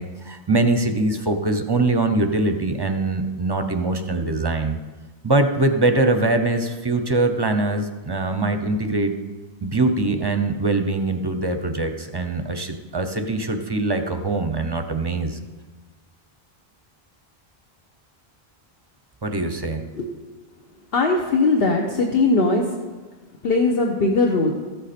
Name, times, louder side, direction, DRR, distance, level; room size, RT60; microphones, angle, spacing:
voice 1, 0.0-4.8 5.2-9.2 9.6-15.4 19.2-19.9, right 2 dB, 30° right, 7 dB, 0.6 m, -22 dB
voice 2, 20.9-22.6 23.4-24.5, left 3 dB, 65° left, 1 dB, 1.1 m, -19 dB
14.0 x 8.0 x 4.3 m, 1.3 s
omnidirectional pair, 1.1 m